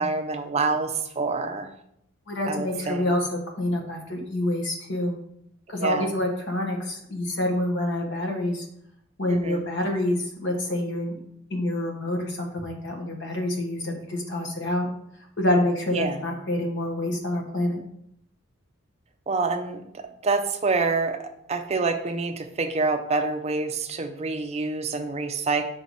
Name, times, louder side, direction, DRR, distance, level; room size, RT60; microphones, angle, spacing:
voice 1, 0.0-1.7 2.5-3.1 5.8-6.1 9.3-9.7 15.9-16.2 19.3-25.7, right 3 dB, 30° right, 7 dB, 0.5 m, -27 dB
voice 2, 2.3-5.1 5.7-8.6 9.2-11.2 11.5-14.9 15.4-17.8, left 1 dB, 60° left, 2 dB, 1.3 m, -27 dB
5.7 x 4.7 x 4.1 m, 0.74 s
head